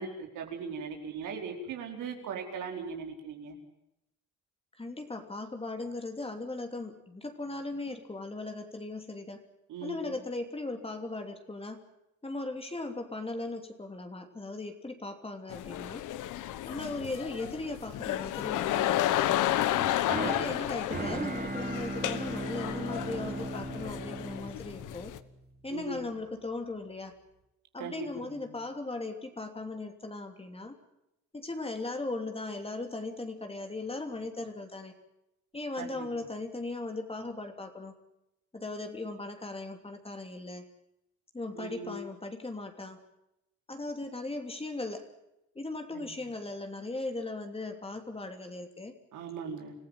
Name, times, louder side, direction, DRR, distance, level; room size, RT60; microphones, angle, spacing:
voice 1, 0.0-3.6 9.7-10.2 16.9-17.0 20.3-20.9 25.7-26.1 27.8-28.1 28.4-28.5 35.8-36.0 41.5-42.0 45.9-46.1 49.1-49.7, right 4 dB, 85° right, 2 dB, 4.5 m, -39 dB
voice 2, 4.8-9.4 9.8-11.8 12.2-16.1 16.6-19.5 20.1-25.1 25.6-27.2 27.7-30.8 31.3-34.9 35.5-37.9 38.5-40.6 41.3-43.0 43.7-45.1 45.5-48.9, left 2 dB, 20° left, 6 dB, 3.0 m, -38 dB
sound 1, 15.5-25.2, left 13 dB, 85° left, 1.2 m, -32 dB
sound 2, 19.7-25.8, right 3 dB, 30° right, 4.0 m, -38 dB
26.5 x 15.0 x 9.2 m, 0.86 s
cardioid pair, 90°, 30 cm